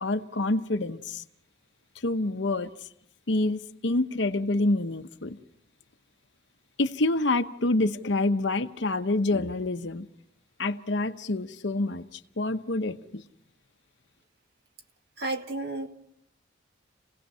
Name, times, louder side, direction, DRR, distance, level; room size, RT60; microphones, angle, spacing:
voice 1, 0.0-1.2 2.0-2.7 3.3-5.4 6.8-10.1 10.6-13.2, left 2 dB, 65° left, 9 dB, 0.9 m, -27 dB
voice 2, 15.2-15.9, right 2 dB, 55° right, 4 dB, 2.2 m, -31 dB
29.5 x 17.5 x 5.6 m, 0.72 s
head